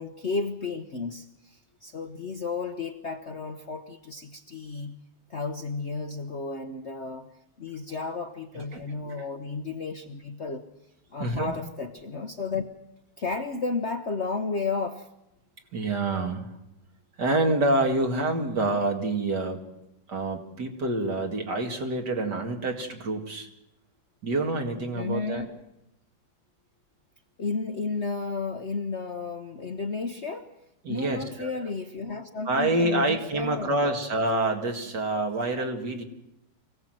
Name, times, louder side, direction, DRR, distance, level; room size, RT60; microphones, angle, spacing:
voice 1, 0.0-4.9 5.3-7.3 7.6-10.7 11.1-12.7 13.2-15.1 24.9-25.5 27.4-30.5 30.9-33.9, left 4 dB, 45° left, 6 dB, 1.0 m, -33 dB
voice 2, 8.6-9.1 11.2-11.5 15.7-16.5 17.2-19.6 20.1-23.5 24.2-25.4 30.8-31.6 32.5-36.0, right 2 dB, 55° right, 3 dB, 2.7 m, -27 dB
24.5 x 16.5 x 7.7 m, 0.90 s
omnidirectional pair, 2.1 m